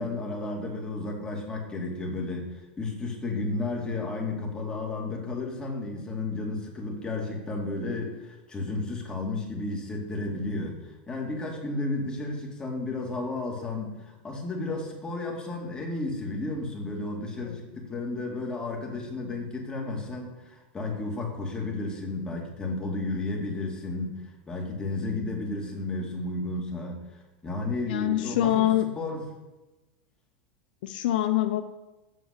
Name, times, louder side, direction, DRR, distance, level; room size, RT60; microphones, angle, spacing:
voice 1, 0.0-28.7 29.0-29.2, left 2 dB, 15° left, -1 dB, 2.4 m, -33 dB
voice 2, 27.9-28.9 30.8-31.6, left 13 dB, 75° left, 9 dB, 0.6 m, -25 dB
8.4 x 6.6 x 6.7 m, 1.1 s
supercardioid pair, 125°, 5 cm